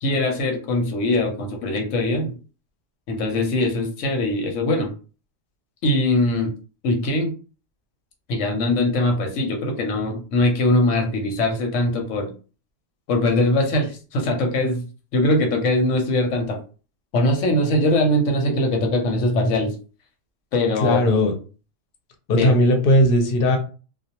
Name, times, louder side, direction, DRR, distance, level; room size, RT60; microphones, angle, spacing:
voice 1, 0.0-2.4 3.1-4.9 5.8-6.5 6.8-7.3 8.3-12.3 13.1-14.8 15.1-16.6 17.1-19.7 20.5-21.0 22.4-22.5, left 1 dB, 85° left, 2 dB, 1.0 m, -21 dB
voice 2, 20.8-21.3 22.3-23.6, left 1 dB, 55° left, 4 dB, 0.7 m, -17 dB
2.4 x 2.0 x 2.8 m, 0.36 s
omnidirectional pair, 1.3 m